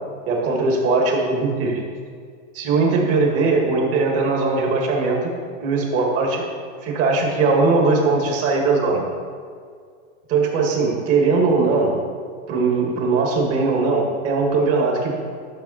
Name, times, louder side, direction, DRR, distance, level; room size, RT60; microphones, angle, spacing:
voice 1, 0.3-1.8 2.5-5.3 5.6-6.4 6.8-9.1 10.3-12.0 12.5-15.1, right 3 dB, 40° right, 0 dB, 2.3 m, -20 dB
12.5 x 6.1 x 4.4 m, 2.1 s
supercardioid pair, 140°, 35 cm